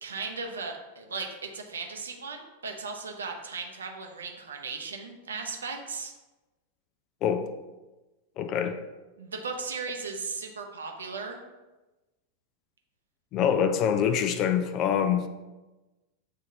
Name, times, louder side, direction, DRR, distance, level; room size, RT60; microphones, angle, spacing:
voice 1, 0.0-6.1 9.2-11.4, right 4 dB, 70° right, 0.6 m, -37 dB
voice 2, 8.4-8.8 13.3-15.3, left 8 dB, 35° left, 0.3 m, -25 dB
7.4 x 2.7 x 2.6 m
figure-of-eight pair, 90°, 0 cm